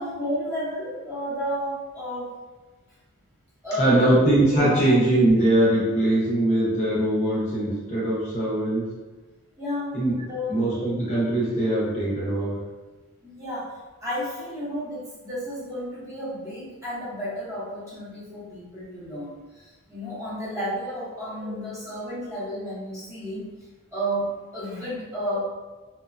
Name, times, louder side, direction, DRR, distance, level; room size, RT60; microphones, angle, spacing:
voice 1, 0.0-2.3 3.6-4.2 4.6-4.7 9.6-9.9 10.3-10.6 13.2-23.5 23.9-25.4, equal, 15° right, -10 dB, 0.7 m, -32 dB
voice 2, 3.8-8.9 9.9-10.1 10.5-12.6 21.4-21.5 25.3-25.4, right 1 dB, 30° left, -7 dB, 0.6 m, -21 dB
2.9 x 2.1 x 2.4 m, 1.3 s
head